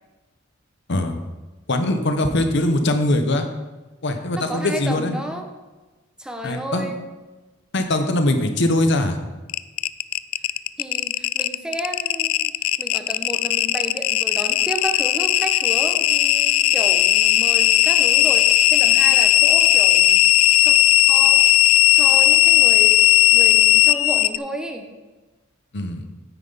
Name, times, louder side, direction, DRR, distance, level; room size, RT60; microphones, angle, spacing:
voice 1, 1.7-3.5 4.0-5.2 6.4-6.9 7.7-9.2 25.7-26.0, left 1 dB, 60° left, 7 dB, 0.9 m, -21 dB
voice 2, 4.3-5.5 6.2-7.0 10.8-12.5 12.8-20.3 20.6-20.7 21.1-21.4 21.9-24.9, right 1 dB, 5° right, 4 dB, 0.8 m, -32 dB
sound 1, 9.5-24.4, left 15 dB, 80° left, 0.3 m, -16 dB
9.2 x 9.1 x 4.0 m, 1.2 s
head